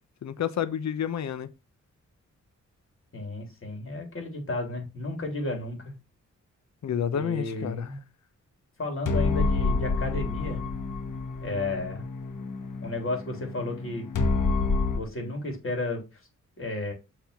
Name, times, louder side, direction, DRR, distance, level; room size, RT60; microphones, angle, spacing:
voice 1, 0.2-1.5 6.8-7.9, left 8 dB, 60° left, 0.7 m, -29 dB
voice 2, 3.1-5.9 7.1-8.0 8.8-10.6 11.4-12.1 12.8-14.1 15.0-16.1 16.6-16.9, left 2 dB, 45° left, 3.5 m, -33 dB
sound 1, 9.1-15.0, left 3 dB, 90° left, 1.1 m, -28 dB
7.0 x 3.7 x 5.8 m
cardioid pair, 90°, 31 cm